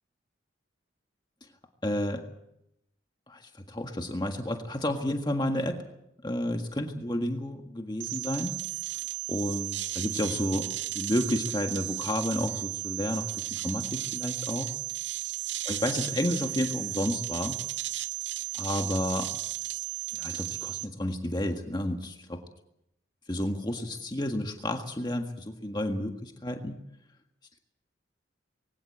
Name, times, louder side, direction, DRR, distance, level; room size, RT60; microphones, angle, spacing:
voice 1, 1.8-2.3 3.3-5.8 6.2-8.6 9.3-14.7 15.7-17.6 18.6-19.3 20.1-22.4 23.3-26.8, left 1 dB, 25° left, 4 dB, 1.7 m, -31 dB
sound 1, 8.0-20.9, right 15 dB, 75° right, 1.8 m, -34 dB
23.0 x 17.5 x 7.9 m, 0.81 s
head